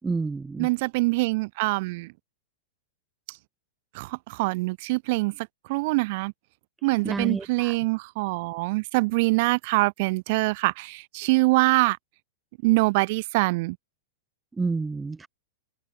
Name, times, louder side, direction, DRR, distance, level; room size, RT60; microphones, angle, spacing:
voice 1, 0.0-0.7 7.0-7.7 14.6-15.3, right 4 dB, 10° right, 4.6 m, -29 dB
voice 2, 0.6-2.1 3.9-6.3 6.8-12.0 12.6-13.8, right 24 dB, 55° right, 3.7 m, -24 dB
open air
hypercardioid pair, 125°, 0 cm